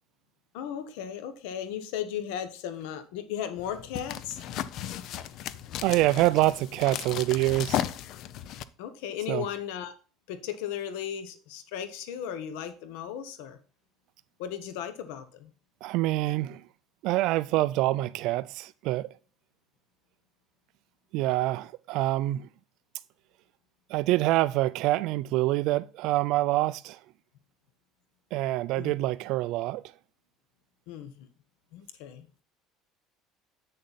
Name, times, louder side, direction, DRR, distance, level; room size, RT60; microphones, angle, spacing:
voice 1, 0.5-4.4 8.8-9.9 10.3-13.6 14.4-15.5 28.7-28.9 30.9-31.3 31.7-32.4, left 9 dB, 90° left, 1.1 m, -36 dB
sound 1, 3.6-8.6, left 11 dB, 45° left, 0.5 m, -35 dB
voice 2, 5.8-7.8 9.3-9.5 15.8-16.6 17.0-19.1 21.1-22.5 23.9-27.0 28.3-29.8, right 17 dB, 55° right, 0.3 m, -26 dB
8.5 x 6.6 x 4.1 m
cardioid pair, 170°, 0 cm